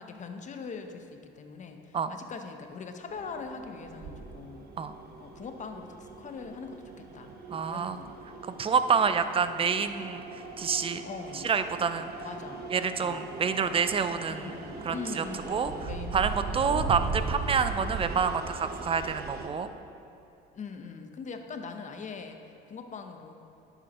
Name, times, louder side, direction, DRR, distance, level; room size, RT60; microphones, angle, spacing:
voice 1, 0.0-4.7 5.2-8.2 11.0-11.5 12.2-12.6 13.0-13.2 14.3-16.9 20.5-22.4 22.7-23.3, left 5 dB, 35° left, 6 dB, 0.7 m, -42 dB
sound 1, 3.1-19.5, right 4 dB, 50° right, 1.0 m, -39 dB
voice 2, 7.5-8.0 8.4-11.0 11.3-12.1 12.7-14.5 14.8-19.7, right 6 dB, 25° right, 10 dB, 0.4 m, -28 dB
11.0 x 8.0 x 3.0 m, 2.7 s
supercardioid pair, 95°, 21 cm